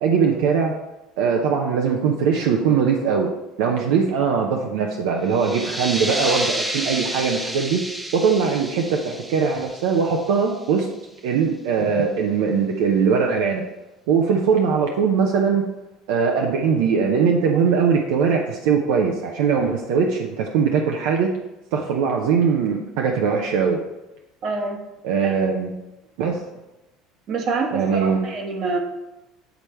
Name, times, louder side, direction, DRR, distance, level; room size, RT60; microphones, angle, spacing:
voice 1, 0.0-0.7 1.2-3.3 3.6-7.8 8.1-10.9 11.2-13.6 14.1-15.6 16.1-21.3 21.7-23.8 25.0-25.8 26.2-26.4 27.7-28.3, right 6 dB, 80° right, 1 dB, 0.7 m, -21 dB
sound 1, 5.3-10.7, right 1 dB, 5° right, 0.7 m, -30 dB
voice 2, 24.4-24.8 25.2-25.3 27.3-28.8, right 4 dB, 55° right, 3 dB, 1.2 m, -26 dB
8.1 x 3.4 x 4.3 m, 0.97 s
supercardioid pair, 95°, 0 cm